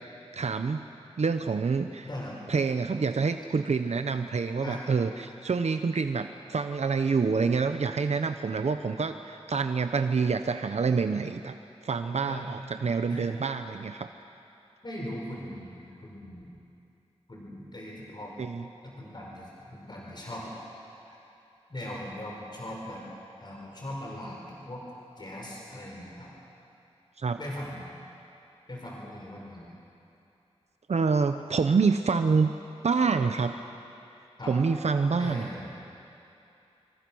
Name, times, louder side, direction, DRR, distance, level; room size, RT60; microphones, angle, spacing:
voice 1, 0.3-0.9 1.2-2.1 2.5-11.5 11.8-14.1 18.4-18.7 27.2-27.4 30.9-32.5 32.8-33.6 34.5-35.5, right 5 dB, 75° right, 8 dB, 0.8 m, -27 dB
voice 2, 2.0-2.4 4.6-4.8 12.2-12.5 13.1-13.2 14.8-16.5 17.3-18.3 18.8-20.5 21.1-21.2 21.7-23.0 23.4-24.8 25.2-26.3 27.4-27.9 28.7-29.7 34.4-34.5 35.2-35.8, left 1 dB, 40° left, -3 dB, 5.0 m, -39 dB
25.5 x 24.5 x 6.3 m, 2.7 s
wide cardioid pair, 95°, 11 cm